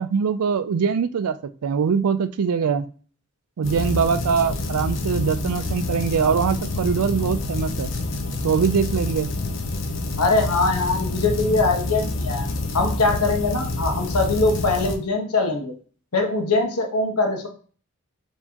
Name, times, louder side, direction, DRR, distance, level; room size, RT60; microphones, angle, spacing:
voice 1, 0.0-2.9 3.6-7.9 8.4-9.3, right 6 dB, 85° right, 11 dB, 0.4 m, -22 dB
sound 1, 3.6-15.0, left 2 dB, 55° left, 0.6 m, -27 dB
voice 2, 10.2-12.5 12.7-15.7 16.1-17.5, left 3 dB, 90° left, 2 dB, 1.1 m, -22 dB
4.5 x 3.3 x 2.8 m, 0.40 s
head